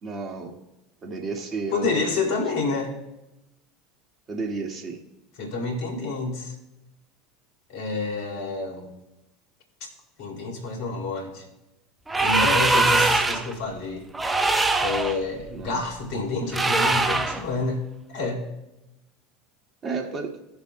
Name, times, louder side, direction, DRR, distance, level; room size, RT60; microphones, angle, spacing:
voice 1, 0.0-0.6 1.0-2.3 4.3-5.0 15.5-15.8 19.8-20.4, right 4 dB, 35° right, 3 dB, 1.9 m, -32 dB
voice 2, 1.7-2.9 5.4-6.5 7.7-8.9 10.2-11.5 12.2-14.1 14.8-17.8 18.1-18.4, left 3 dB, 65° left, 2 dB, 2.6 m, -28 dB
sound 1, 12.1-13.5 14.1-15.2 16.5-17.4, right 2 dB, 15° right, 0.8 m, -22 dB
17.5 x 7.0 x 2.2 m, 0.95 s
hypercardioid pair, 80°, 0 cm